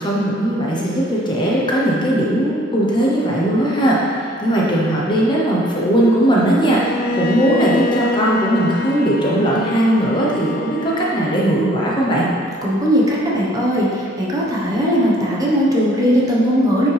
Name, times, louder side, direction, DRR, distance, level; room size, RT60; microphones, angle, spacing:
voice 1, 0.0-12.3, right 1 dB, 25° left, -5 dB, 0.9 m, -18 dB
Bowed string instrument, 6.7-11.7, left 2 dB, 50° left, 0.4 m, -26 dB
voice 2, 12.6-16.9, equal, 20° right, -6 dB, 1.1 m, -18 dB
9.2 x 5.2 x 3.4 m, 2.4 s
head